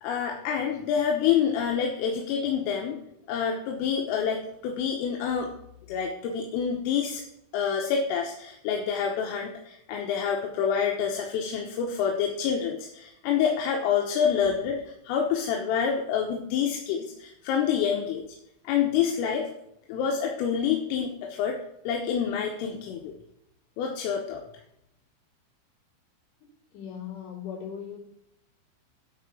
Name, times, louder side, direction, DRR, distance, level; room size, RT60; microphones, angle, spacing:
voice 1, 0.0-3.0 3.3-5.5 5.9-7.2 7.5-18.2 18.7-19.5 19.9-21.6 21.9-23.1 23.8-24.4, left 7 dB, 80° left, 1 dB, 3.5 m, -27 dB
voice 2, 26.7-28.0, left 8 dB, 55° left, -5 dB, 6.0 m, -38 dB
10.5 x 4.8 x 7.4 m, 0.80 s
omnidirectional pair, 6.0 m